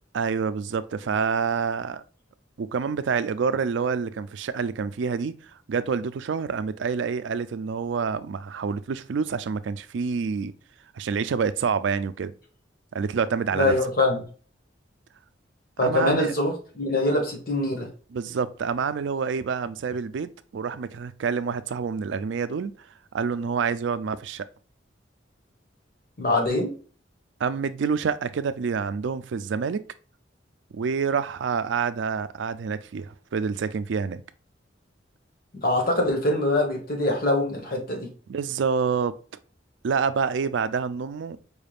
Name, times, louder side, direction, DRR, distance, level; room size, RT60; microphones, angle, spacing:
voice 1, 0.1-2.0 2.6-5.3 5.7-10.5 10.9-12.3 12.9-13.7 15.8-16.3 18.1-22.8 23.1-24.5 27.4-29.8 30.7-34.2 38.3-39.1 39.8-41.4, right 5 dB, 70° right, 0.4 m, -27 dB
voice 2, 13.5-14.3 15.8-17.9 26.2-26.7 35.5-38.1, left 2 dB, 50° left, 1.3 m, -24 dB
4.7 x 3.4 x 2.4 m
head